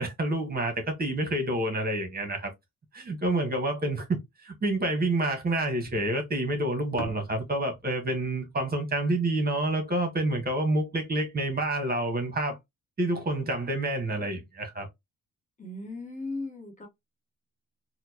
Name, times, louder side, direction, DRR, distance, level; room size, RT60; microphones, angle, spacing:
voice 1, 0.0-2.5 2.9-12.6 13.0-14.9, right 1 dB, 30° right, 1.3 m, -28 dB
sound 1, 5.9-10.2, left 3 dB, 75° left, 1.0 m, -46 dB
voice 2, 15.6-16.9, left 2 dB, 25° left, 1.2 m, -37 dB
4.2 x 2.2 x 2.8 m
cardioid pair, 90°, 30 cm